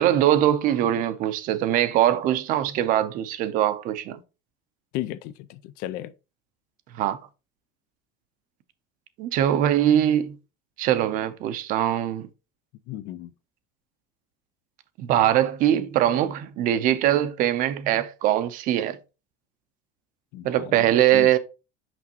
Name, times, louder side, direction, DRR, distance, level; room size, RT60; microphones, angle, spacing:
voice 1, 0.0-4.2 6.9-7.2 9.2-10.4 10.8-12.3 15.0-19.0 20.4-21.4, right 11 dB, 45° right, 0.6 m, -22 dB
voice 2, 4.9-6.1 12.9-13.3 20.3-20.9 21.1-21.3, left 14 dB, 50° left, 0.4 m, -34 dB
6.0 x 5.7 x 2.9 m
cardioid pair, 165°, 20 cm